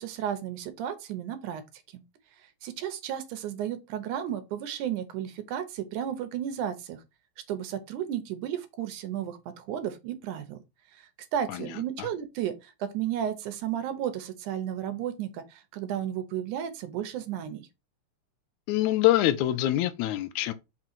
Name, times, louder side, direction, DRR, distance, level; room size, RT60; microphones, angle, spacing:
voice 1, 0.0-1.6 1.9-2.0 2.6-7.0 7.5-10.6 10.9-17.7, right 10 dB, 75° right, 2.1 m, -33 dB
voice 2, 18.7-20.5, left 14 dB, 80° left, 1.7 m, -25 dB
5.6 x 3.7 x 4.5 m
omnidirectional pair, 3.9 m